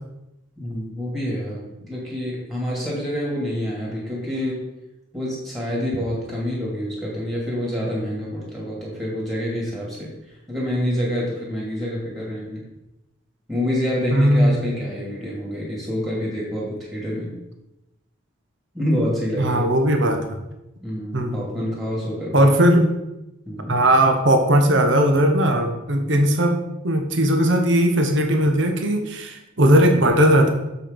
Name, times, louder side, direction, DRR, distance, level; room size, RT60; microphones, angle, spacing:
voice 1, 0.6-4.6 5.1-12.6 13.5-17.3 18.7-19.7 20.8-22.5 23.5-23.8, equal, 15° right, -5 dB, 2.2 m, -27 dB
voice 2, 14.1-14.7 19.4-20.4 21.1-21.5 22.3-22.9 23.7-26.6 26.8-30.5, right 1 dB, 65° right, 5 dB, 1.1 m, -18 dB
7.1 x 6.4 x 5.2 m, 0.92 s
head